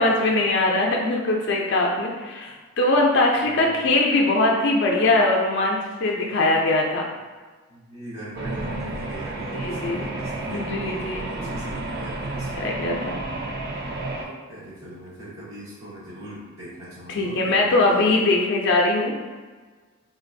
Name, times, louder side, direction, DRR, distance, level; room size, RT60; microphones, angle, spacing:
voice 1, 0.0-7.0 9.5-10.1 10.5-11.4 12.5-13.2 17.1-19.1, left 2 dB, 55° left, -1 dB, 0.4 m, -21 dB
voice 2, 3.4-3.8 7.7-12.7 13.4-13.7 14.2-18.2, right 1 dB, 80° right, -12 dB, 1.2 m, -40 dB
sound 1, 8.3-14.2, right 2 dB, 50° right, 0.4 m, -31 dB
3.7 x 2.4 x 2.6 m, 1.4 s
head